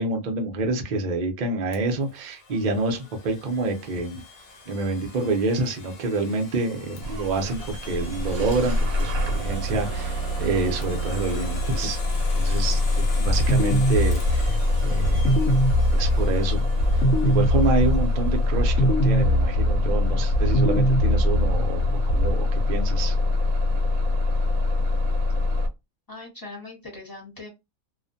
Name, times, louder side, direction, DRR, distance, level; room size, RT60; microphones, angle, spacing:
voice 1, 0.0-4.2 4.7-12.0 12.3-15.6 15.9-16.6 16.9-23.1, right 3 dB, 55° right, 0.5 m, -27 dB
Domestic sounds home sounds, 1.7-18.5, left 4 dB, 55° left, 0.8 m, -44 dB
Bus / Engine starting, 7.0-25.7, left 2 dB, 90° right, 1.0 m, -24 dB
sound 1, 13.3-22.3, equal, 75° left, 1.0 m, -23 dB
voice 2, 26.1-27.5, left 2 dB, 20° left, 0.9 m, -40 dB
2.4 x 2.1 x 2.5 m
omnidirectional pair, 1.4 m